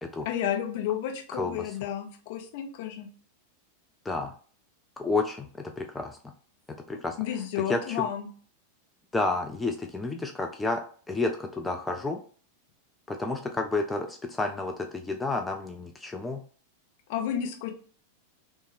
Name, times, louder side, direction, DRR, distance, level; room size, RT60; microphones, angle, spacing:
voice 1, 0.2-3.1 7.2-8.3 17.1-17.7, left 10 dB, 50° left, 3 dB, 0.7 m, -31 dB
voice 2, 1.3-1.7 4.1-4.3 5.0-6.2 6.9-7.2 7.7-8.1 9.1-10.8 11.1-12.2 13.1-16.4, left 3 dB, 10° left, 4 dB, 0.3 m, -30 dB
3.1 x 2.2 x 3.3 m, 0.42 s
figure-of-eight pair, 90°, 0 cm